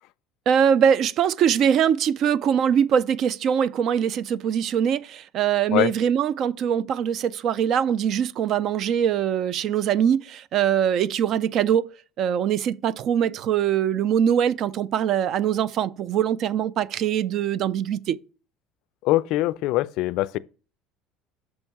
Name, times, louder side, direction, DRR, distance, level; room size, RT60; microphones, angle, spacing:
voice 1, 0.5-11.9 12.2-18.2, right 8 dB, 55° right, 0.4 m, -22 dB
voice 2, 19.0-20.4, left 17 dB, 70° left, 0.3 m, -23 dB
6.3 x 5.3 x 5.9 m
supercardioid pair, 90°, 0 cm